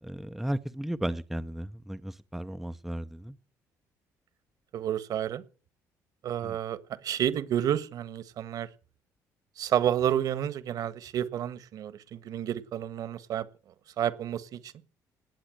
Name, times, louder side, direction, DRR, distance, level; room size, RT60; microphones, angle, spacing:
voice 1, 0.0-3.4 6.4-6.6, right 1 dB, 5° right, 0.6 m, -35 dB
voice 2, 4.7-5.4 6.2-8.7 9.6-13.5 14.0-14.7, right 10 dB, 65° right, 1.6 m, -30 dB
19.0 x 8.1 x 7.9 m
cardioid pair, 105°, 7 cm